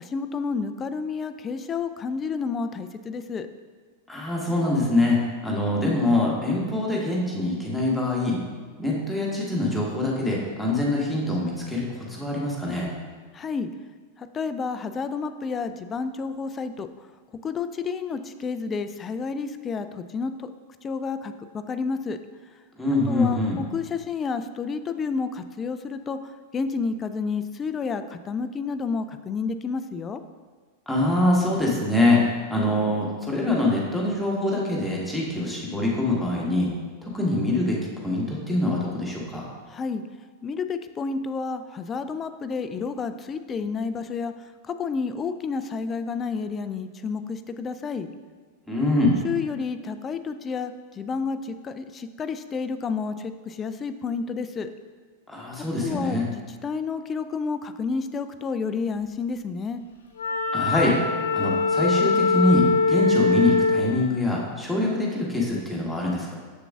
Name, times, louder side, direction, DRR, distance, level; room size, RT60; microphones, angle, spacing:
voice 1, 0.0-3.5 13.3-13.7 14.2-16.9 17.4-20.5 20.8-22.2 23.1-30.2 39.7-40.0 40.4-48.1 49.2-54.7 55.8-59.8, left 5 dB, 25° left, 10 dB, 0.3 m, -30 dB
voice 2, 4.1-5.2 5.4-8.4 8.8-12.9 22.8-23.6 30.9-36.7 37.0-39.5 48.7-49.2 55.3-56.2 60.5-61.0 61.3-66.4, left 2 dB, 5° left, -4 dB, 1.3 m, -24 dB
Wind instrument woodwind instrument, 60.2-63.9, left 4 dB, 65° left, 0.7 m, -22 dB
7.1 x 6.6 x 2.4 m, 1.5 s
figure-of-eight pair, 90°, 0 cm